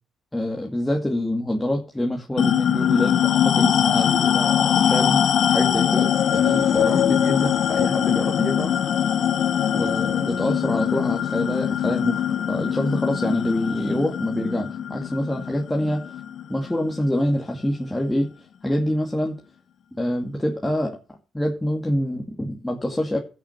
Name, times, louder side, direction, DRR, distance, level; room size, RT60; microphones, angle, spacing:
voice 1, 0.3-8.7 9.7-16.2 16.5-18.3 18.6-19.4 20.0-20.9 21.3-23.2, left 1 dB, 10° left, 0 dB, 2.3 m, -26 dB
sound 1, 2.4-17.2, left 9 dB, 65° left, 0.9 m, -22 dB
16.0 x 6.5 x 5.7 m, 0.36 s
cardioid pair, 90°, 0 cm